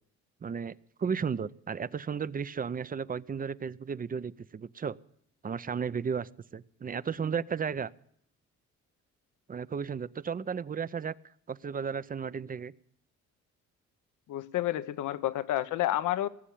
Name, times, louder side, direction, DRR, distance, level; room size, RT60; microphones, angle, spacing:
voice 1, 0.4-5.0 5.4-7.9 9.5-11.1 11.5-12.7, right 6 dB, 30° right, 19 dB, 0.5 m, -34 dB
voice 2, 14.3-16.3, left 13 dB, 80° left, 14 dB, 0.9 m, -30 dB
19.0 x 7.3 x 10.0 m, 0.69 s
cardioid pair, 90°, 30 cm